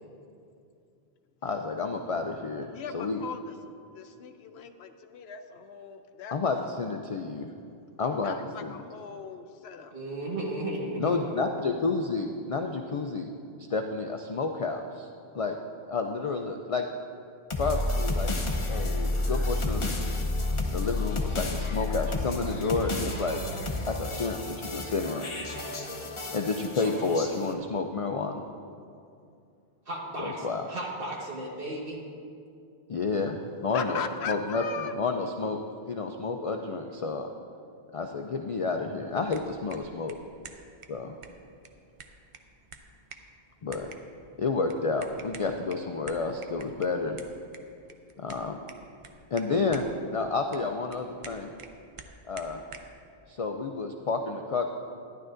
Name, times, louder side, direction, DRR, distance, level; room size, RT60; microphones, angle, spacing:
voice 1, 1.4-3.2 6.3-7.5 8.0-8.3 8.6-8.7 11.0-13.3 13.7-15.1 15.3-15.6 15.9-16.8 17.6-18.3 18.7-19.9 20.7-23.4 23.9-25.3 26.3-28.4 30.2-30.7 32.9-34.0 34.3-35.6 35.9-37.3 37.9-40.2 40.9-41.2 43.6-43.9 44.4-47.2 48.2-48.6 49.3-51.5 52.3-52.6 53.3-54.7, left 4 dB, 55° left, 4 dB, 0.4 m, -30 dB
voice 2, 2.7-3.5 3.9-6.4 8.2-9.9 10.2-10.6 33.7-34.9, left 7 dB, 80° left, 8 dB, 0.9 m, -38 dB
voice 3, 9.9-11.4 25.7-26.0 29.9-32.0, right 1 dB, 65° right, -3 dB, 1.7 m, -35 dB
sound 1, 17.5-27.5, left 2 dB, 35° left, 0.7 m, -31 dB
sound 2, 39.1-53.0, right 4 dB, 40° right, 0.5 m, -50 dB
12.0 x 10.5 x 2.5 m, 2.5 s
omnidirectional pair, 1.0 m